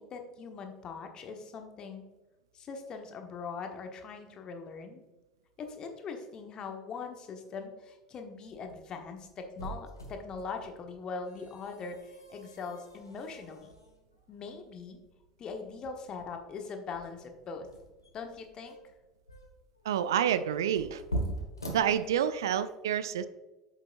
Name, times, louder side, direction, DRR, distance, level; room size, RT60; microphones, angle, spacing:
voice 1, 0.0-2.1 2.5-5.0 5.6-13.7 14.3-15.0 15.4-17.7 18.1-18.7, left 5 dB, 35° left, 5 dB, 1.1 m, -41 dB
sound 1, 8.4-22.6, right 1 dB, 85° left, 1.2 m, -43 dB
voice 2, 19.9-21.0 21.7-23.3, right 9 dB, 65° right, 14 dB, 0.3 m, -28 dB
8.3 x 7.1 x 2.5 m, 1.2 s
figure-of-eight pair, 70°, 2 cm